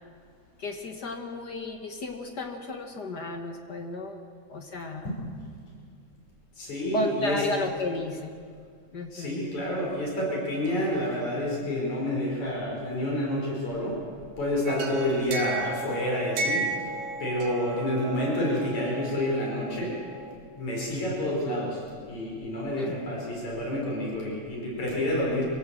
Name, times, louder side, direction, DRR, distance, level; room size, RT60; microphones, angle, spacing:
voice 1, 0.6-4.2 4.5-5.1 6.9-8.4 8.9-9.4 22.8-22.9, left 2 dB, 45° left, 4 dB, 1.5 m, -33 dB
voice 2, 6.6-7.4 9.1-14.0 14.4-16.9 17.2-20.0 20.5-25.4, left 1 dB, 70° left, -3 dB, 6.5 m, -29 dB
sound 1, 14.7-20.3, right 2 dB, 85° right, 3.3 m, -34 dB
25.5 x 17.0 x 7.7 m, 2.2 s
omnidirectional pair, 3.4 m